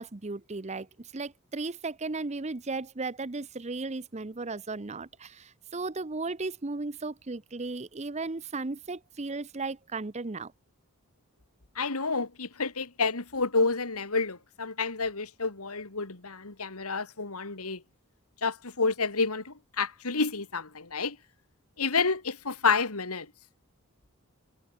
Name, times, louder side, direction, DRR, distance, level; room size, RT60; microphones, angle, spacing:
voice 1, 0.0-10.5, right 3 dB, 30° right, 0.7 m, -35 dB
voice 2, 11.8-17.8 18.4-21.2 21.8-23.3, left 4 dB, 85° left, 2.4 m, -29 dB
head